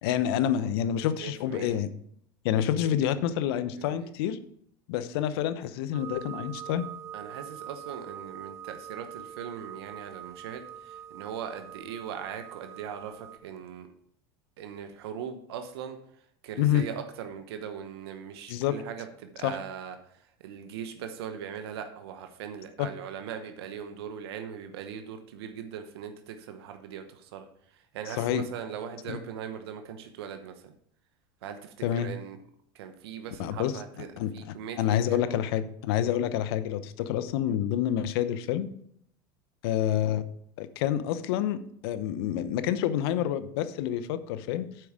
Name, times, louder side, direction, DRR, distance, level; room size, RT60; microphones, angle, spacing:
voice 1, 0.0-1.9 2.4-4.4 4.9-6.8 16.6-16.9 18.5-18.8 19.4-19.6 22.8-22.9 28.1-28.4 29.1-29.2 31.8-32.1 33.4-33.8 34.2-38.7 39.6-40.2 40.6-44.7, left 10 dB, 75° left, 13 dB, 0.8 m, -28 dB
voice 2, 1.2-1.8 2.8-2.9 3.8-4.0 7.1-10.6 11.1-13.2 13.4-13.9 14.6-16.0 16.4-20.0 20.4-27.0 27.3-27.4 27.9-30.5 31.4-32.4 32.8-34.1 34.3-35.2, right 8 dB, 85° right, 7 dB, 1.0 m, -39 dB
sound 1, 5.9-13.4, right 9 dB, 20° right, 1.0 m, -44 dB
7.7 x 5.0 x 7.3 m, 0.67 s
supercardioid pair, 115°, 13 cm